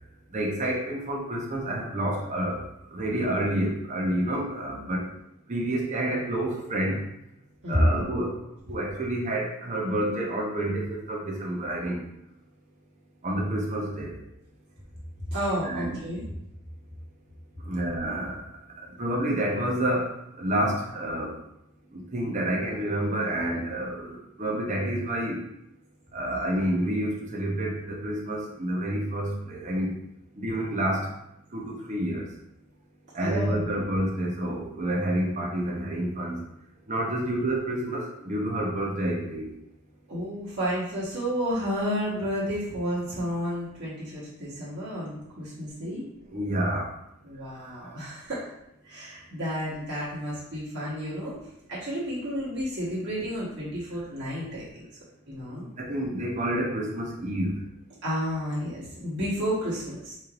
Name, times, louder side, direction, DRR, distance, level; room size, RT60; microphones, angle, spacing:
voice 1, 0.3-2.6 2.9-5.0 5.5-7.0 7.7-8.3 8.7-12.0 13.2-14.2 15.6-16.0 17.7-18.4 19.0-20.1 20.4-21.3 21.9-25.4 26.1-29.9 30.4-31.1 31.5-32.2 33.1-36.4 36.9-39.5 46.3-46.9 47.6-47.7 55.8-57.6, right 1 dB, 35° right, -2 dB, 0.7 m, -28 dB
voice 2, 15.3-16.2 33.2-33.7 40.1-46.0 47.2-48.5 48.8-51.4 51.7-54.8 55.3-55.7 58.0-60.1, equal, 60° right, -9 dB, 1.3 m, -31 dB
4.2 x 3.2 x 2.5 m, 0.81 s
head